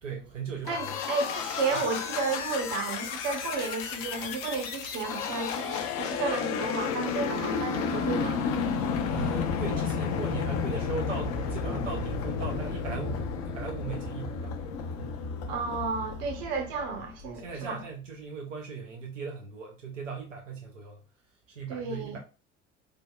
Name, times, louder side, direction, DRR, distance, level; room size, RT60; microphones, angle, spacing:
voice 1, 0.0-1.0 1.7-1.8 9.1-14.5 15.0-15.2 17.3-21.0 21.5-22.2, right 5 dB, 90° right, 0.5 m, -38 dB
sound 1, 0.6-17.3, left 5 dB, 55° left, 0.5 m, -32 dB
voice 2, 0.6-8.4 15.5-17.8 21.7-22.2, right 4 dB, 60° right, 0.8 m, -32 dB
3.3 x 2.1 x 2.2 m
figure-of-eight pair, 60°, 36 cm